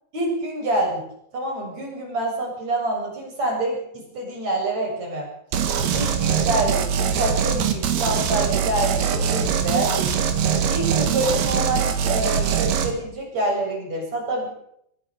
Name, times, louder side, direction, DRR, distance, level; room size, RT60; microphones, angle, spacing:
voice 1, 0.1-1.0 1.3-5.3 5.9-10.3 10.7-14.5, right 1 dB, 40° right, 0 dB, 8.2 m, -26 dB
sound 1, 5.5-12.9, right 7 dB, 70° right, 4.0 m, -22 dB
24.5 x 17.5 x 6.8 m, 0.73 s
omnidirectional pair, 4.9 m